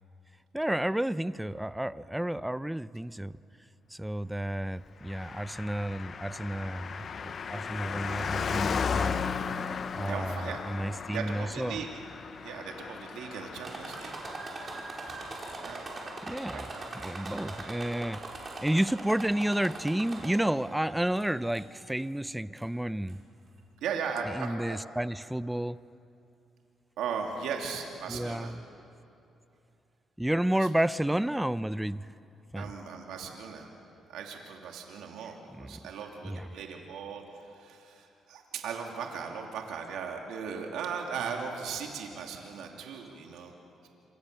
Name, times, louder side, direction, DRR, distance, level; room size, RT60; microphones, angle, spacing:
voice 1, 0.5-3.3 3.9-9.1 9.9-10.4 10.7-11.8 16.2-16.7 16.9-23.2 24.3-25.8 28.1-28.5 30.2-32.1 32.5-32.7 35.6-35.8 36.2-36.4, right 1 dB, 5° right, 16 dB, 0.6 m, -31 dB
Car passing by, 5.0-16.9 17.1-17.2, left 6 dB, 50° left, 0.9 m, -36 dB
voice 2, 10.1-10.7 11.1-11.9 12.4-14.1 15.6-15.8 16.5-16.8 23.8-24.8 27.0-28.6 30.5-30.7 32.6-33.7 34.1-43.5, right 6 dB, 85° right, 2 dB, 2.7 m, -38 dB
sound 1, 13.6-20.7 21.2-21.8 22.6-22.7 23.1-23.2, right 2 dB, 35° right, 5.2 m, -41 dB
27.0 x 26.5 x 6.7 m, 2.7 s
cardioid pair, 90°, 0 cm